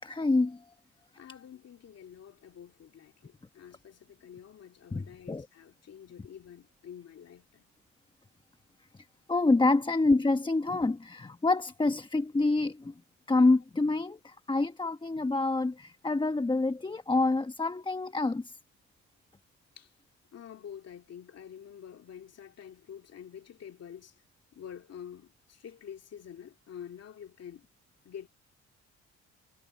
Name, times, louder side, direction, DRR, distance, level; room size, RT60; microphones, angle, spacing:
voice 1, 0.0-0.6 4.9-5.4 9.3-12.9 13.3-18.4, left 3 dB, 15° left, 1.1 m, -27 dB
voice 2, 1.2-7.6 19.8-19.9 20.3-24.2 24.5-27.6 28.0-28.3, left 8 dB, 55° left, 2.5 m, -48 dB
cardioid pair, 90°, 30 cm